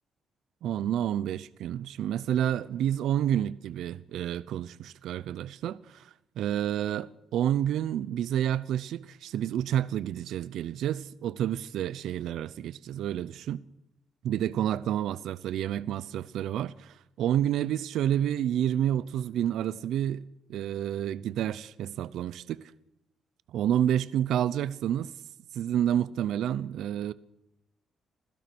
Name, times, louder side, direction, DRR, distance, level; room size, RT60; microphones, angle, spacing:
voice 1, 0.6-13.6 14.2-20.2 20.5-22.7 23.5-25.1 25.5-27.1, right 10 dB, 80° right, 0.7 m, -29 dB
26.5 x 16.0 x 6.2 m
cardioid pair, 90°, 0 cm